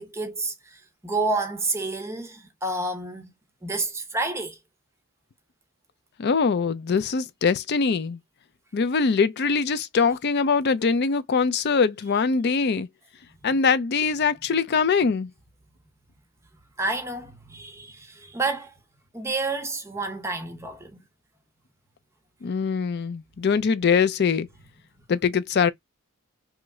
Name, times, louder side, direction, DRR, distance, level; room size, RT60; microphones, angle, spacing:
voice 1, 0.0-3.3 3.6-4.6 16.8-18.7 19.1-21.0, right 3 dB, 15° right, 0.7 m, -29 dB
voice 2, 6.2-8.2 8.7-12.9 13.4-15.3 22.4-24.5 25.1-25.7, left 5 dB, 50° left, 0.4 m, -22 dB
3.0 x 2.1 x 3.5 m
head